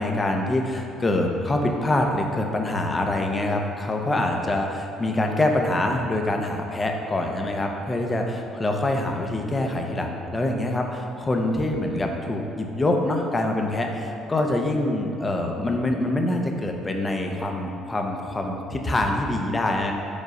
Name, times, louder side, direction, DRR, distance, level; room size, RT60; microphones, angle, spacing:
voice 1, 0.0-19.9, left 1 dB, 25° left, 2 dB, 0.8 m, -25 dB
5.3 x 3.8 x 4.9 m, 2.6 s
hypercardioid pair, 60°, 0 cm